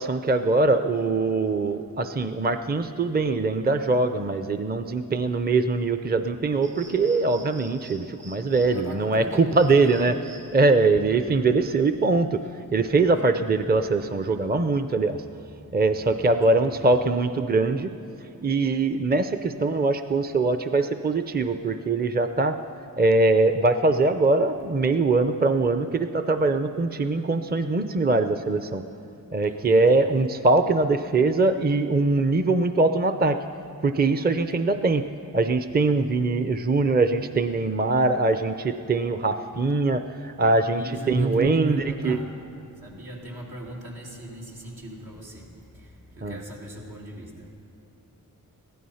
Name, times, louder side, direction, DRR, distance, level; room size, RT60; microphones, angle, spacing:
voice 1, 0.0-10.1 10.5-15.2 15.7-17.9 18.4-22.6 23.0-28.8 29.3-33.4 33.8-35.0 35.3-42.2 46.2-46.4, right 3 dB, 25° right, 9 dB, 0.6 m, -22 dB
sound 1, 6.6-12.8, right 2 dB, 45° right, 2.7 m, -50 dB
voice 2, 8.6-10.1 13.3-13.4 15.3-15.4 15.7-17.0 18.4-18.5 29.4-30.0 40.8-42.3 42.7-47.5, right 1 dB, 80° right, -3 dB, 2.9 m, -40 dB
16.0 x 12.5 x 5.7 m, 2.7 s
cardioid pair, 50°, 36 cm